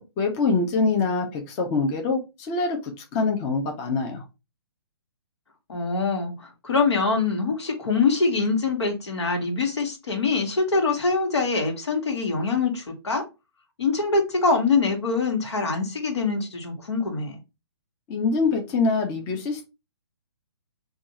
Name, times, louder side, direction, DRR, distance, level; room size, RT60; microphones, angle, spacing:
voice 1, 0.0-4.2 18.1-19.7, left 4 dB, 25° left, 2 dB, 0.6 m, -24 dB
voice 2, 5.7-13.2 13.8-17.4, left 4 dB, 85° left, 2 dB, 1.2 m, -24 dB
2.6 x 2.4 x 3.9 m, 0.26 s
hypercardioid pair, 145°, 14 cm